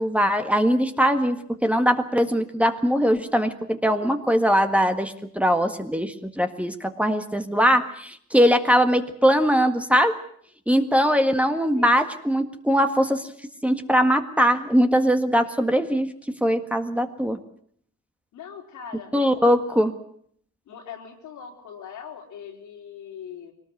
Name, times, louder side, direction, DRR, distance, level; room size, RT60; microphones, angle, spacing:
voice 1, 0.0-10.2 10.7-13.3 13.6-17.4 19.1-19.9, equal, 5° right, 6 dB, 1.7 m, -21 dB
voice 2, 18.3-19.9 20.7-23.5, left 7 dB, 80° left, 1 dB, 4.4 m, -41 dB
22.5 x 19.0 x 8.0 m, 0.63 s
cardioid pair, 90°, 30 cm